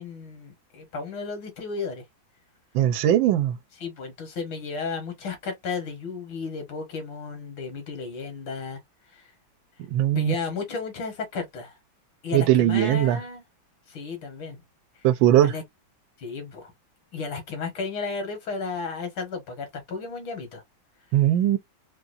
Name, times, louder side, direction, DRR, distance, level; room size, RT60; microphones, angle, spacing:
voice 1, 0.0-2.0 3.8-8.8 9.1-9.3 10.1-11.8 12.2-13.4 13.9-14.6 15.4-15.6 16.2-16.7 17.1-20.6, left 4 dB, 80° left, 2.2 m, -33 dB
voice 2, 2.7-3.6 9.9-10.4 12.3-13.2 15.0-15.5 21.1-21.6, right 12 dB, 80° right, 1.3 m, -20 dB
4.2 x 2.4 x 2.6 m
omnidirectional pair, 2.2 m